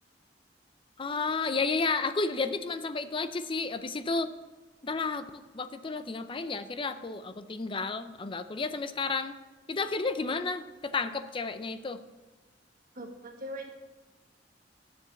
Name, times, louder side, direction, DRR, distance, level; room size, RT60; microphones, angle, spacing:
voice 1, 1.0-4.3 4.8-9.4 9.7-12.0, left 4 dB, 30° left, 11 dB, 0.5 m, -32 dB
voice 2, 12.9-13.7, equal, 50° right, 2 dB, 1.4 m, -40 dB
10.0 x 7.1 x 6.9 m, 1.2 s
head